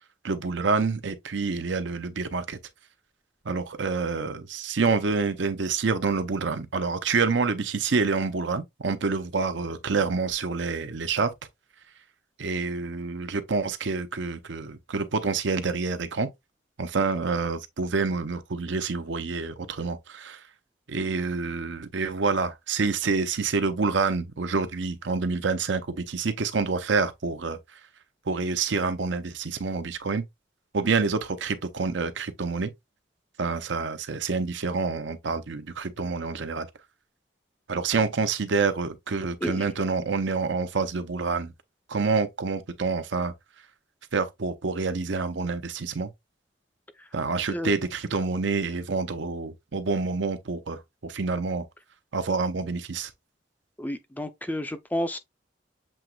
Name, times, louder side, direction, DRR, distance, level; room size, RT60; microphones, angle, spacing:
voice 1, 0.2-2.6 3.4-11.3 12.4-16.3 16.8-20.4 20.9-27.6 28.3-30.2 30.7-32.7 33.4-36.7 37.7-41.5 41.9-43.3 44.1-46.1 47.1-51.6 52.1-53.1, right 4 dB, 70° right, 0.7 m, -27 dB
voice 2, 53.8-55.2, equal, 10° left, 0.4 m, -31 dB
7.4 x 2.9 x 2.3 m
head